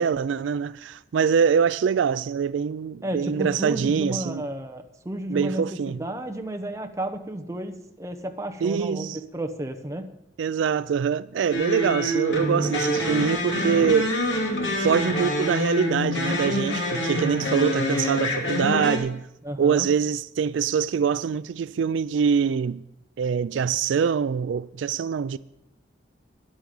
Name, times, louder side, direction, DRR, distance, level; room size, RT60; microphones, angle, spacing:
voice 1, 0.0-4.5 5.3-6.0 8.6-9.2 10.4-14.2 14.8-19.2 19.6-22.8 23.2-25.4, right 6 dB, 80° right, 0.3 m, -24 dB
voice 2, 3.0-10.1 19.4-19.9, right 1 dB, 15° right, 0.9 m, -32 dB
sound 1, 11.5-19.0, left 1 dB, 75° left, 2.6 m, -26 dB
12.5 x 10.5 x 5.4 m
head